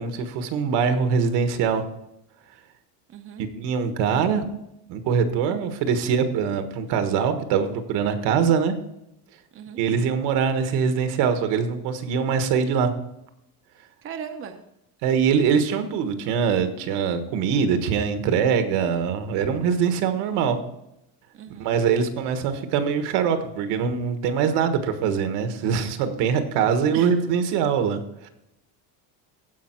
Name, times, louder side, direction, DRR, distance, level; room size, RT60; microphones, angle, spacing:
voice 1, 0.0-1.9 3.4-4.5 4.9-8.7 9.8-12.9 15.0-20.6 21.6-28.3, right 6 dB, 70° right, 8 dB, 1.5 m, -23 dB
voice 2, 3.1-3.4 9.5-9.8 14.0-14.6 21.3-21.7 26.9-27.1, right 8 dB, 30° right, 5 dB, 0.7 m, -37 dB
15.5 x 5.4 x 4.5 m, 0.84 s
cardioid pair, 175°, 42 cm